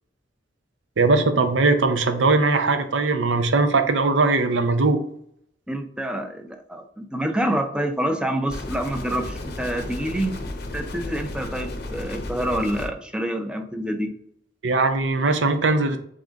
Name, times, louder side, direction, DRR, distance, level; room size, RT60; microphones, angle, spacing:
voice 1, 1.0-5.0 14.6-16.0, right 3 dB, 80° right, 8 dB, 0.6 m, -20 dB
voice 2, 5.7-10.3 10.7-14.1, right 1 dB, 5° right, 5 dB, 0.5 m, -27 dB
sound 1, 8.5-12.9, left 2 dB, 60° left, 0.7 m, -33 dB
3.8 x 3.5 x 3.8 m, 0.68 s
head